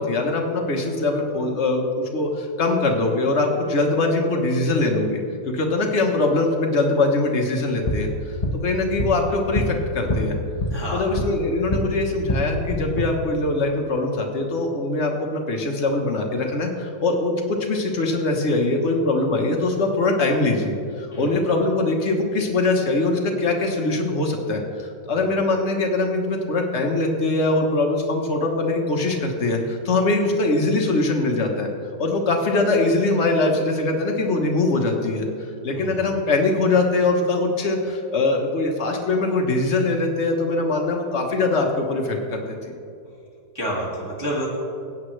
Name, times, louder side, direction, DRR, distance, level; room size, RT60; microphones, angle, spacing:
voice 1, 0.0-8.4 8.6-10.4 10.9-31.7 32.0-35.3 35.6-42.4, left 2 dB, 40° left, 1 dB, 1.1 m, -22 dB
sound 1, 7.6-11.9 12.2-13.0, left 1 dB, 60° left, 0.3 m, -26 dB
voice 2, 10.7-11.1 21.1-21.4 25.2-25.3 35.7-36.0 43.5-44.5, equal, 10° right, -5 dB, 1.8 m, -29 dB
17.0 x 8.8 x 3.2 m, 2.4 s
omnidirectional pair, 2.4 m